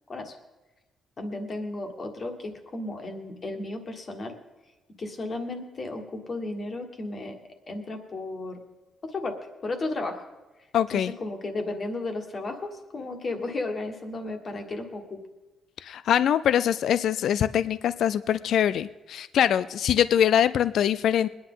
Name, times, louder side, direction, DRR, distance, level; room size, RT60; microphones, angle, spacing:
voice 1, 1.2-4.3 5.0-7.4 7.7-8.6 9.0-10.2 10.9-15.2, left 2 dB, 30° left, 5 dB, 1.6 m, -34 dB
voice 2, 10.7-11.1 15.8-21.3, left 9 dB, 60° left, 15 dB, 0.3 m, -23 dB
22.5 x 10.0 x 3.9 m, 1.1 s
cardioid pair, 165°, 0 cm